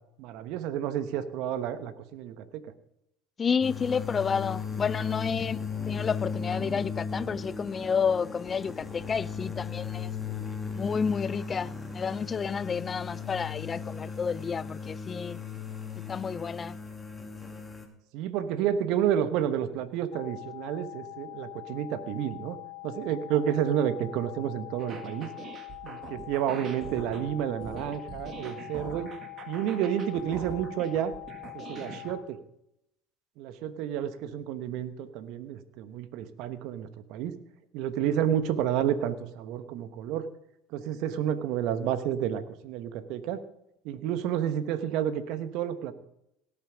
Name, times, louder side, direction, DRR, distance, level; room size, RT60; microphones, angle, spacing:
voice 1, 0.2-2.5 18.1-22.6 22.8-25.3 25.8-29.1 29.5-31.1 31.5-32.4 33.4-37.3 37.7-40.3 40.7-43.4 43.8-45.9, right 10 dB, 65° right, 1.1 m, -30 dB
voice 2, 3.4-10.1 10.7-15.4 16.1-16.8, left 6 dB, 35° left, 0.4 m, -30 dB
sound 1, 3.6-17.9, left 5 dB, 15° left, 2.4 m, -36 dB
sound 2, 20.1-32.2, left 28 dB, 60° left, 0.9 m, -44 dB
sound 3, 24.8-32.2, right 6 dB, 45° right, 1.8 m, -43 dB
18.0 x 7.2 x 5.1 m
hypercardioid pair, 70°, 0 cm